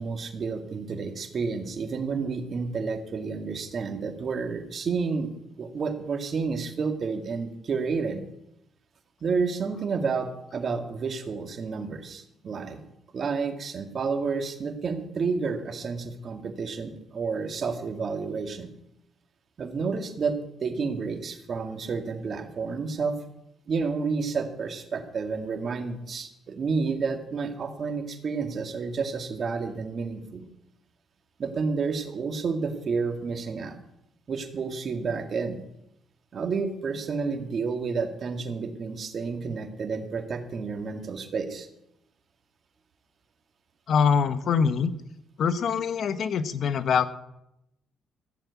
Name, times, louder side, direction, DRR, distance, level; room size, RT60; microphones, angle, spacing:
voice 1, 0.0-5.3 5.6-8.2 9.2-12.8 13.1-18.7 19.6-23.2 23.7-30.5 31.4-33.8 34.3-35.6 36.3-41.7, right 5 dB, 50° right, 6 dB, 2.0 m, -30 dB
voice 2, 43.9-44.9 45.4-47.1, left 6 dB, 65° left, 12 dB, 1.1 m, -24 dB
14.5 x 7.4 x 8.2 m, 0.82 s
cardioid pair, 90°, 0 cm